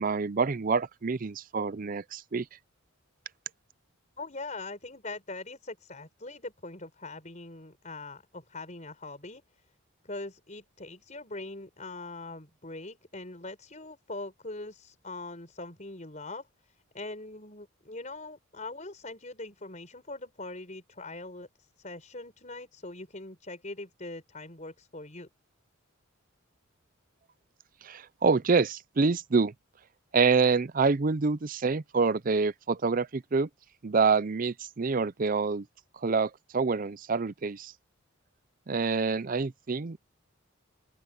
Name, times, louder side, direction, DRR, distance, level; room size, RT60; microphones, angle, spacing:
voice 1, 0.0-2.5 27.8-29.5 30.1-33.5 33.8-35.7 36.0-37.7 38.7-40.0, right 4 dB, 40° right, 0.5 m, -26 dB
voice 2, 4.2-9.4 10.0-16.5 16.9-25.3, left 2 dB, 35° left, 4.9 m, -42 dB
open air
head